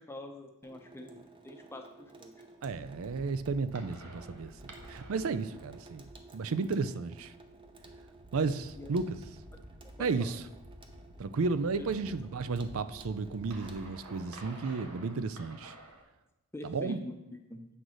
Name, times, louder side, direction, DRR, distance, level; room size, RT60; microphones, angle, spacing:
voice 1, 0.0-2.4 8.8-8.9 10.0-10.3 11.8-11.9 16.5-17.7, left 1 dB, 10° left, 4 dB, 0.6 m, -45 dB
Water tap faucet / Sink (filling or washing), 0.6-14.9, right 3 dB, 25° right, 0.7 m, -56 dB
voice 2, 2.6-6.0 6.3-7.3 8.3-9.2 10.0-10.4 11.2-15.7 16.6-17.0, right 4 dB, 65° right, 13 dB, 0.4 m, -33 dB
sound 1, 2.6-16.0, right 1 dB, 85° right, 1.2 m, -52 dB
8.0 x 3.9 x 6.2 m, 0.96 s
head